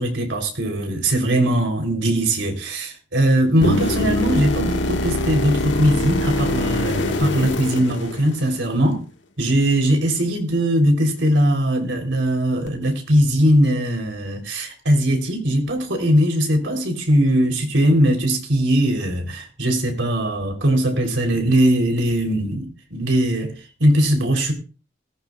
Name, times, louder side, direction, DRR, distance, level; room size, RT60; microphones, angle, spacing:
voice 1, 0.0-9.0 9.4-23.5 23.8-24.5, right 1 dB, 90° right, 3.5 m, -20 dB
sound 1, 3.6-8.7 12.7-12.8, left 1 dB, 90° left, 1.6 m, -23 dB
17.5 x 15.5 x 2.4 m
head